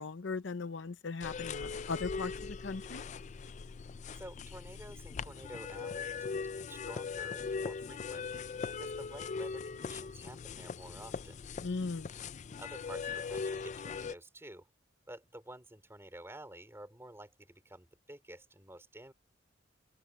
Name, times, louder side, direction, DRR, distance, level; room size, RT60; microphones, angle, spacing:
voice 1, 0.0-3.0 11.6-12.1, left 4 dB, 70° left, 0.7 m, -38 dB
sound 1, 1.2-14.1, left 5 dB, 40° left, 0.4 m, -40 dB
voice 2, 4.2-8.3 8.8-11.4 12.6-14.7 15.1-19.1, right 1 dB, 15° right, 4.2 m, -50 dB
open air
head